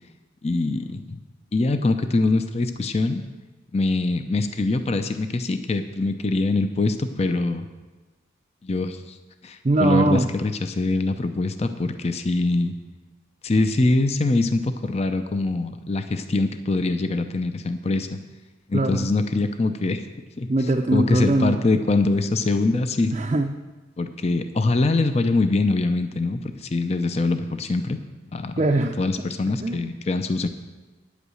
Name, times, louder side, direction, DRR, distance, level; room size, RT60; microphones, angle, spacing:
voice 1, 0.4-1.2 1.5-3.2 3.7-7.7 8.6-9.2 9.4-12.7 13.4-18.2 18.7-20.0 20.4-20.5 20.9-23.1 24.0-28.0 28.3-28.5 29.0-30.5, left 2 dB, 30° left, 9 dB, 0.5 m, -23 dB
voice 2, 9.6-10.3 18.7-19.1 20.5-21.6 23.1-23.5 28.6-29.0 29.6-29.9, right 2 dB, 30° right, 1 dB, 0.5 m, -21 dB
9.7 x 8.3 x 6.3 m, 1.2 s
head